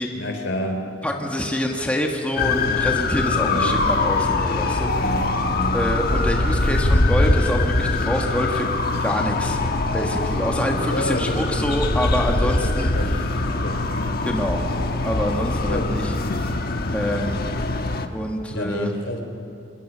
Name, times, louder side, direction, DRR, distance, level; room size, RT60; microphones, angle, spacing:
voice 1, 0.1-0.9 3.4-3.8 4.9-5.8 10.6-11.7 12.4-13.2 13.5-14.1 14.5-14.7 15.7-15.9 18.5-19.2, left 1 dB, 70° left, 4 dB, 3.3 m, -29 dB
voice 2, 1.0-5.0 5.7-8.7 9.0-9.6 9.9-12.9 14.2-14.6 15.0-16.5 16.9-17.4 18.1-18.9, equal, 5° left, 1 dB, 1.5 m, -26 dB
sound 1, 2.4-18.1, left 2 dB, 55° left, 1.2 m, -23 dB
26.0 x 20.5 x 6.1 m, 2.7 s
head